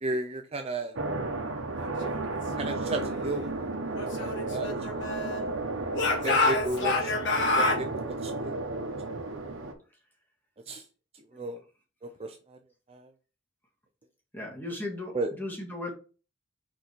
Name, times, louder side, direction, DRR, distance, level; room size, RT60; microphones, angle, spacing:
voice 1, 0.0-1.0 2.6-3.5 4.2-4.7 6.2-7.1 7.6-8.5 10.7-10.8 11.3-11.6 12.0-12.6 12.9-13.1 15.1-15.3, right 2 dB, 30° right, 5 dB, 0.5 m, -33 dB
sound 1, 1.0-9.7, right 2 dB, 70° right, 1.0 m, -33 dB
Speech / Shout, 3.9-5.5 5.9-7.8, left 3 dB, 60° left, 1.5 m, -27 dB
voice 2, 14.3-15.9, left 2 dB, 10° left, -1 dB, 1.7 m, -37 dB
5.1 x 4.5 x 4.5 m, 0.36 s
head